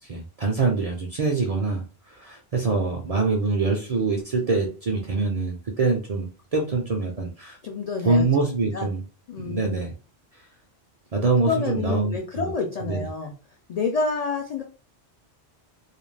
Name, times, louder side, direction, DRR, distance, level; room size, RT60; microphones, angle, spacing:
voice 1, 0.1-1.8 2.1-7.6 8.0-9.0 9.4-9.9 11.1-12.5 12.8-13.0, right 3 dB, 50° right, 1 dB, 0.4 m, -24 dB
voice 2, 7.6-8.9 9.3-9.8 11.5-13.3 13.7-14.6, left 4 dB, 55° left, 2 dB, 0.4 m, -28 dB
2.4 x 2.2 x 3.2 m, 0.35 s
omnidirectional pair, 1.1 m